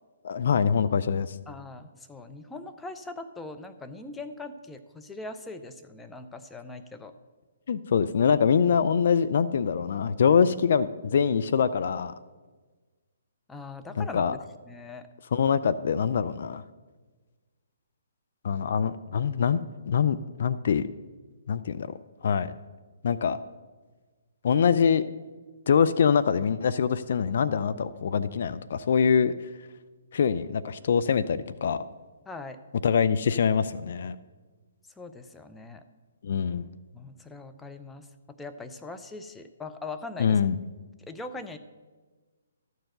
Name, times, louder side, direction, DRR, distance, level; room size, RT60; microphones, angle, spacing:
voice 1, 0.2-1.4 7.7-12.1 14.0-14.4 15.3-16.6 18.4-20.9 21.5-21.9 22.2-22.5 23.0-23.4 24.4-25.0 25.7-29.3 30.1-31.8 32.8-34.2 36.2-36.7 40.2-40.6, left 6 dB, 60° left, 14 dB, 0.4 m, -24 dB
voice 2, 1.5-7.1 13.5-14.4 14.7-15.1 32.3-32.6 35.0-35.8 36.9-40.4 41.0-41.6, left 3 dB, 10° left, 7 dB, 0.6 m, -41 dB
13.0 x 4.7 x 7.7 m, 1.3 s
figure-of-eight pair, 135°, 0 cm